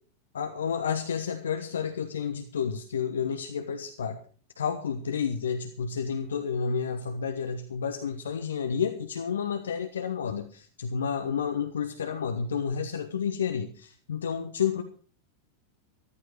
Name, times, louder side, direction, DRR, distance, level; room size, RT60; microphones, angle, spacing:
voice 1, 0.3-4.2 4.6-14.8, left 6 dB, 65° left, 8 dB, 1.2 m, -30 dB
14.0 x 13.5 x 4.7 m, 0.42 s
figure-of-eight pair, 90°, 0 cm